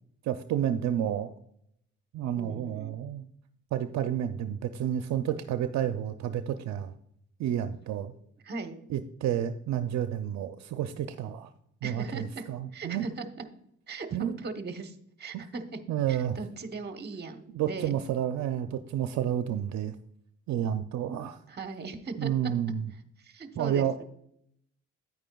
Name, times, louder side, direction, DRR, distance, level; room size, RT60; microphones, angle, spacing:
voice 1, 0.2-1.3 2.1-3.3 3.7-6.9 7.4-8.1 8.9-11.5 11.8-13.1 14.1-14.3 15.3-15.4 15.9-16.4 17.5-20.0 20.5-21.4 22.2-22.9 23.6-24.0, right 10 dB, 65° right, 9 dB, 0.5 m, -30 dB
voice 2, 2.4-3.0 8.4-8.8 11.8-12.5 12.7-13.3 13.9-15.8 16.1-17.9 21.5-22.5 23.2-24.0, right 4 dB, 35° right, 8 dB, 1.0 m, -39 dB
9.5 x 8.7 x 2.3 m, 0.72 s
cardioid pair, 90°, 30 cm